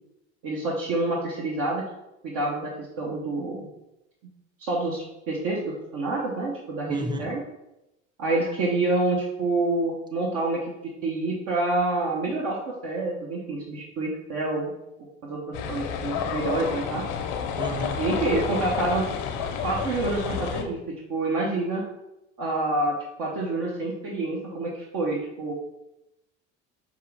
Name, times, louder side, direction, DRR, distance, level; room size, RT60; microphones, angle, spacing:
voice 1, 0.4-1.8 2.2-3.7 4.6-7.4 8.2-14.7 15.2-17.0 18.0-19.1 19.6-21.9 22.4-25.5, right 2 dB, 65° right, -3 dB, 1.0 m, -27 dB
voice 2, 6.9-7.3 17.6-18.0, equal, 10° right, 5 dB, 0.6 m, -32 dB
sound 1, 15.5-20.6, left 7 dB, 75° left, 0.7 m, -30 dB
5.6 x 2.4 x 3.3 m, 0.91 s
hypercardioid pair, 75°, 36 cm